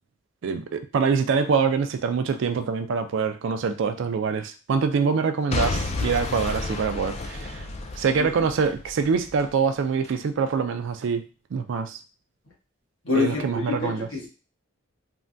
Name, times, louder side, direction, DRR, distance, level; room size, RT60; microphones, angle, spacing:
voice 1, 0.4-7.6 8.0-11.2 11.5-12.0 13.1-14.1, right 5 dB, 60° right, 8 dB, 0.3 m, -25 dB
Boom / Shatter / Crushing, 5.5-9.5 10.0-10.1, left 2 dB, 30° left, 0.3 m, -31 dB
voice 2, 13.0-13.4 13.7-14.3, left 4 dB, 65° left, -2 dB, 1.1 m, -26 dB
3.3 x 2.2 x 2.5 m, 0.32 s
head